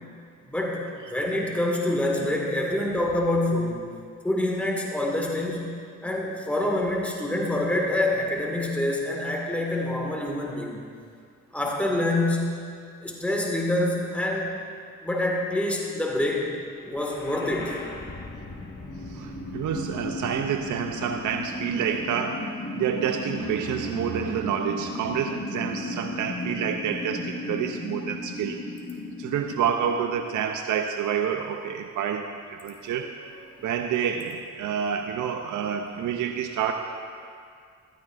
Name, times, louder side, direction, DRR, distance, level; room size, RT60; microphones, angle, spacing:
voice 1, 0.4-3.8 4.2-5.7 6.0-10.8 11.5-12.6 13.0-14.6 15.0-16.5 16.8-17.8 32.8-32.9 33.5-33.6, left 1 dB, 5° left, -1 dB, 2.0 m, -26 dB
sound 1, 16.8-30.8, left 2 dB, 35° left, 1.5 m, -36 dB
voice 2, 19.0-28.6 29.2-33.1 33.6-36.7, right 8 dB, 70° right, 5 dB, 0.6 m, -28 dB
15.0 x 12.0 x 2.6 m, 2.2 s
supercardioid pair, 65°, 32 cm